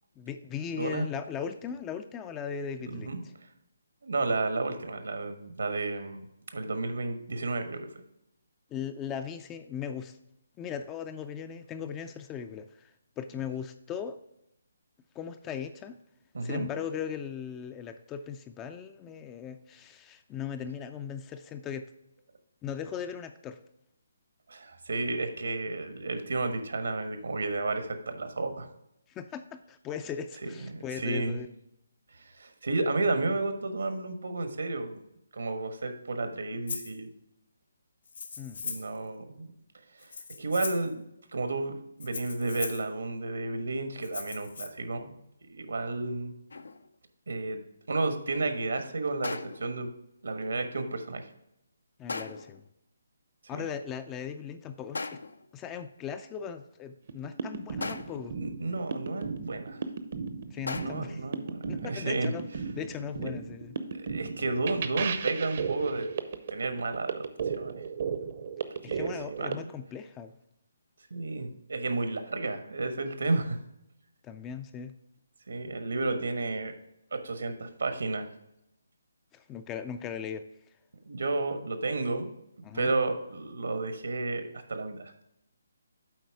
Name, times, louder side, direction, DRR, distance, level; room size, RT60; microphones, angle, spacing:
voice 1, 0.2-3.3 8.7-10.2 10.6-14.2 15.2-16.0 16.4-21.9 22.6-23.6 29.1-31.5 38.4-38.6 52.0-52.6 53.5-55.2 55.5-58.4 60.5-61.2 61.7-63.8 68.8-70.4 74.2-74.9 79.3-80.4 82.6-82.9, left 7 dB, 15° left, 10 dB, 0.3 m, -38 dB
voice 2, 0.7-1.1 2.9-3.2 4.0-6.3 6.5-7.9 16.3-16.7 24.5-28.7 30.4-31.3 32.1-35.0 35.3-37.1 38.6-39.5 40.0-40.1 40.4-41.0 41.3-45.1 45.5-46.3 47.3-47.6 47.9-49.9 50.2-51.3 53.5-53.7 58.4-59.8 60.7-62.3 63.2-63.3 63.9-66.1 66.5-67.8 68.8-69.7 71.1-73.6 75.5-76.7 77.1-78.3 81.1-82.3 82.7-85.1, right 3 dB, 80° right, 8 dB, 1.3 m, -32 dB
Rattle (instrument), 36.7-36.9 38.0-39.0 40.0-40.9 42.0-42.9 44.0-44.7, left 5 dB, 65° left, 1.1 m, -39 dB
sound 1, 46.5-46.9 49.2-49.8 52.1-52.6 54.9-55.5 57.8-58.4 60.7-61.2, left 3 dB, 85° left, 0.6 m, -38 dB
sound 2, 57.1-69.5, right 6 dB, 50° right, 0.7 m, -35 dB
7.9 x 4.6 x 4.7 m, 0.82 s
hypercardioid pair, 160°, 0 cm